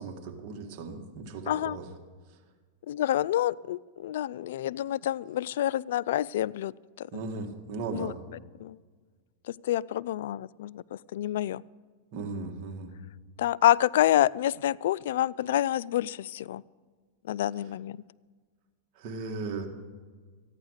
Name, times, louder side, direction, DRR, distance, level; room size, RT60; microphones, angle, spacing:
voice 1, 0.0-1.8 7.1-8.1 12.1-12.9 19.0-19.7, right 4 dB, 50° right, 3 dB, 2.0 m, -37 dB
voice 2, 1.5-1.8 2.9-6.7 7.0-7.2 7.9-8.1 8.6-8.8 9.5-11.6 13.4-16.6 17.2-18.0, left 12 dB, 75° left, 21 dB, 0.3 m, -28 dB
14.5 x 9.7 x 6.5 m, 1.5 s
hypercardioid pair, 130°, 0 cm